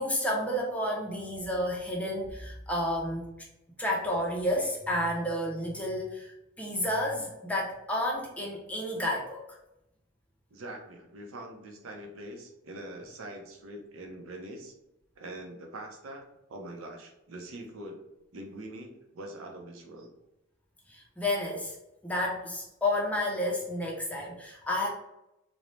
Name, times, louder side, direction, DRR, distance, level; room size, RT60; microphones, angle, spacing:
voice 1, 0.0-3.5 3.8-9.6 20.9-21.8 22.0-24.9, left 1 dB, 5° left, -2 dB, 0.4 m, -31 dB
voice 2, 10.5-14.7 15.2-18.0 18.3-20.1, right 1 dB, 85° right, 1 dB, 0.6 m, -43 dB
2.5 x 2.0 x 3.1 m, 0.90 s
head